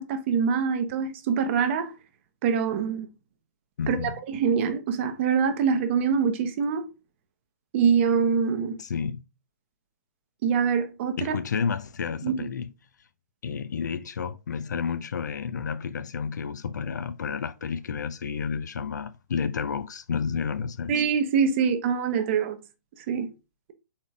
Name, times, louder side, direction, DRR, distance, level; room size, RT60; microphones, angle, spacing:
voice 1, 0.0-1.9 2.4-3.1 3.9-6.9 7.7-8.8 10.4-11.4 12.2-12.5 20.9-22.6 23.1-23.3, right 6 dB, 40° right, 0.8 m, -24 dB
voice 2, 3.8-4.2 8.8-9.2 11.2-12.7 13.4-20.9, left 6 dB, 75° left, 0.6 m, -31 dB
4.4 x 3.6 x 3.3 m
hypercardioid pair, 140°, 10 cm